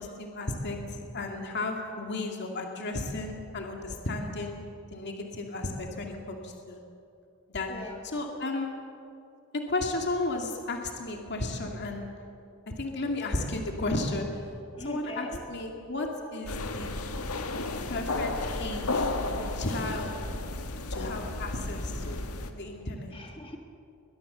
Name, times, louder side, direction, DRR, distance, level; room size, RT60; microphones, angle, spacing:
voice 1, 0.0-4.6 4.9-6.8 7.5-7.7 8.0-8.7 9.5-12.1 12.7-14.3 14.8-17.0 17.9-18.3 18.6-20.2 20.9-22.2 22.5-23.1, left 2 dB, 55° left, 2 dB, 2.2 m, -33 dB
voice 2, 14.7-15.4 23.1-23.6, left 1 dB, 25° left, 2 dB, 1.9 m, -41 dB
sound 1, 16.5-22.5, left 2 dB, 85° left, 1.7 m, -33 dB
21.5 x 21.5 x 6.8 m, 2.5 s
head